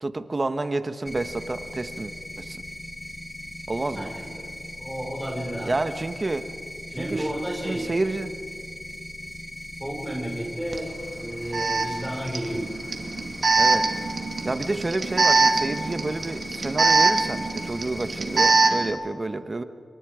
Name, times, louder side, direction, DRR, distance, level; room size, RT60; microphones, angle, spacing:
voice 1, 0.0-2.6 3.7-4.1 5.6-6.5 7.0-7.3 7.6-8.3 13.6-13.9 14.4-19.6, right 2 dB, 35° right, 10 dB, 1.3 m, -29 dB
sound 1, 1.0-18.5, left 1 dB, 10° left, 3.0 m, -39 dB
voice 2, 3.9-4.5 4.8-5.7 6.9-7.9 9.8-12.7, right 1 dB, 5° right, -1 dB, 5.0 m, -32 dB
Alarm, 10.7-10.8 11.5-18.9, right 3 dB, 65° right, 2.3 m, -23 dB
28.0 x 25.0 x 5.1 m, 2.3 s
cardioid pair, 60°, 0 cm